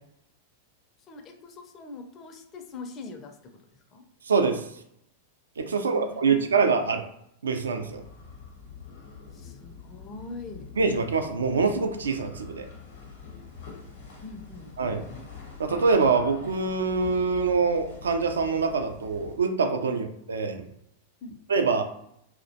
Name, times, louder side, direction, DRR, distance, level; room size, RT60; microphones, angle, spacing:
voice 1, 1.1-4.0 5.7-6.6 9.3-10.7 14.2-15.2 19.9-20.0 21.2-21.4, left 3 dB, 30° left, 5 dB, 0.4 m, -43 dB
voice 2, 4.2-4.7 5.6-7.0 7.4-8.0 10.8-12.7 14.8-15.0 15.6-20.6 21.5-21.8, right 4 dB, 75° right, 6 dB, 0.3 m, -25 dB
sound 1, 7.8-19.5, left 5 dB, 60° left, 0.7 m, -45 dB
2.3 x 2.1 x 2.6 m, 0.75 s
figure-of-eight pair, 95°, 0 cm